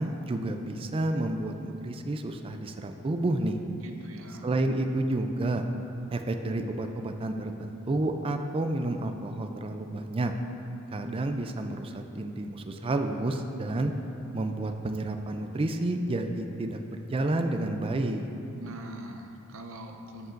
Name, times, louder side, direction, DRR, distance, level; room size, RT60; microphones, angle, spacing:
voice 1, 0.0-3.6 4.4-5.7 6.1-10.3 10.9-13.9 14.3-18.3, right 2 dB, 25° right, 6 dB, 0.3 m, -30 dB
voice 2, 3.8-4.5 18.6-20.3, right 1 dB, 65° right, 4 dB, 0.6 m, -43 dB
13.0 x 5.5 x 2.5 m, 2.8 s
head